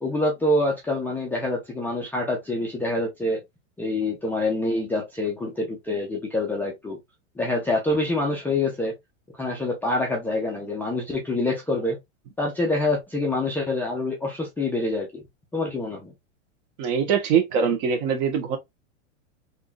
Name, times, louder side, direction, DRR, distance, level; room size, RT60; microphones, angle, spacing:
voice 1, 0.0-3.4 3.8-7.0 7.4-8.9 9.4-12.0 12.4-15.2 15.5-16.1, left 2 dB, 5° left, 0.5 m, -26 dB
voice 2, 16.8-18.6, right 7 dB, 40° right, 1.1 m, -23 dB
3.5 x 2.7 x 2.3 m
hypercardioid pair, 135°, 37 cm